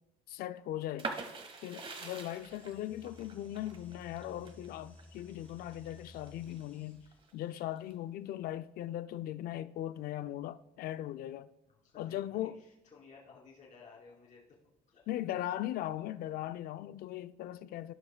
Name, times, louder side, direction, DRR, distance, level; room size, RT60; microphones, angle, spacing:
voice 1, 0.3-1.1 1.6-7.0 7.3-11.5 12.0-12.6 15.1-17.9, left 13 dB, 65° left, 0.4 m, -39 dB
sound 1, 1.0-6.6 7.1-7.9, right 4 dB, 30° right, 1.1 m, -44 dB
sound 2, 2.2-7.4, left 1 dB, 10° left, 1.7 m, -56 dB
voice 2, 11.8-14.5 14.9-15.1, left 4 dB, 50° left, 2.7 m, -56 dB
15.0 x 5.5 x 2.2 m
cardioid pair, 110°, 17 cm